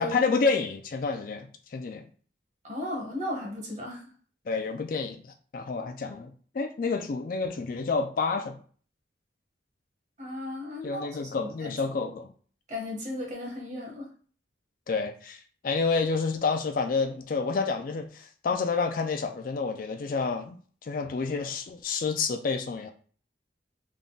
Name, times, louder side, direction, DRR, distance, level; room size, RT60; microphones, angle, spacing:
voice 1, 0.0-2.0 4.5-8.6 10.8-12.3 14.9-22.9, left 4 dB, 45° left, 0.3 m, -29 dB
voice 2, 2.6-4.1 10.2-11.8 12.7-14.1, left 1 dB, 40° right, 1.1 m, -35 dB
3.6 x 2.2 x 3.8 m
head